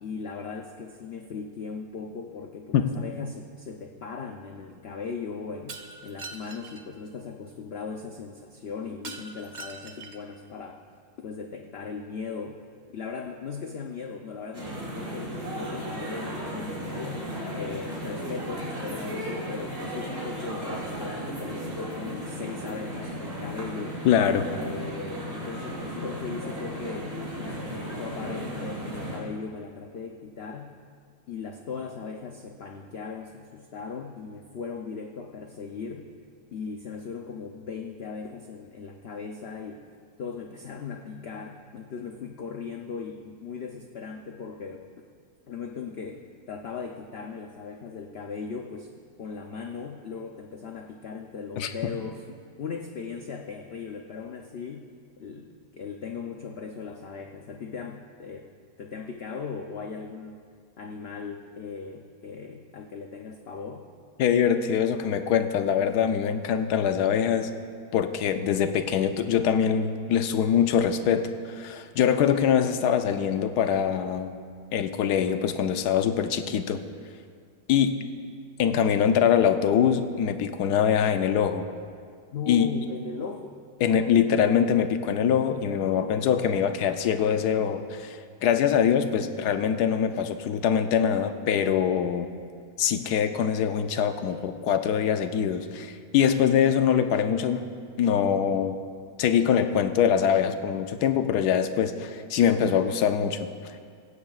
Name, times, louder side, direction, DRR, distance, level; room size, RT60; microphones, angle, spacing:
voice 1, 0.0-5.7 6.0-10.8 11.2-12.6 12.9-17.3 17.5-24.0 24.5-27.1 27.4-30.7 31.3-36.1 36.5-39.8 40.2-44.8 45.5-48.9 49.2-54.9 55.2-58.5 58.8-60.4 60.8-63.8 82.3-83.6 85.8-86.5, left 5 dB, 55° left, 2 dB, 0.7 m, -38 dB
Shatter, 5.7-6.8 9.0-10.3, right 3 dB, 45° right, 0.6 m, -42 dB
sound 1, 14.5-29.2, equal, 60° right, 3.7 m, -35 dB
voice 2, 24.0-24.5 51.6-51.7 64.2-67.5 67.9-74.3 74.7-76.8 77.7-78.0 78.6-81.6 82.5-82.7 83.8-92.3 92.8-97.6 98.0-98.8 99.2-103.5, left 8 dB, 90° left, 8 dB, 1.2 m, -23 dB
16.5 x 16.0 x 2.4 m, 2.1 s
omnidirectional pair, 1.7 m